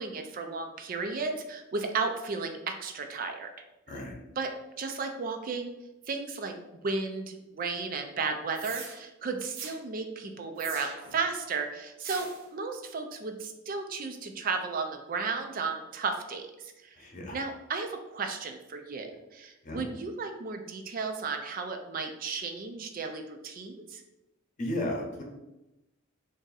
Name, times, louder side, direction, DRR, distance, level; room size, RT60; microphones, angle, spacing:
voice 1, 0.0-3.5 3.9-4.0 4.4-4.5 4.8-5.7 6.1-17.0 17.3-24.0, right 4 dB, 45° right, 5 dB, 0.4 m, -34 dB
voice 2, 3.9-4.2 17.0-17.4 19.6-19.9 24.6-25.2, left 1 dB, 40° left, 0 dB, 0.8 m, -34 dB
sound 1, 8.5-9.0 9.5-9.8 10.6-11.2 12.0-12.4, right 5 dB, 80° right, 0.6 m, -41 dB
3.4 x 2.6 x 3.9 m, 0.98 s
head